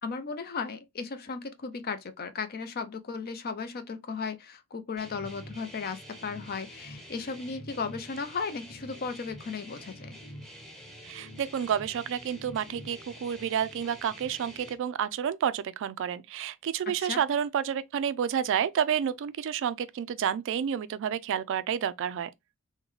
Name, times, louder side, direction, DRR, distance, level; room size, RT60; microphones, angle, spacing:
voice 1, 0.0-10.2 17.0-17.2, left 5 dB, 45° left, 0.5 m, -36 dB
sound 1, 5.0-14.7, equal, ahead, 0.8 m, -47 dB
voice 2, 11.0-22.3, right 8 dB, 60° right, 0.3 m, -30 dB
3.8 x 2.1 x 3.1 m
head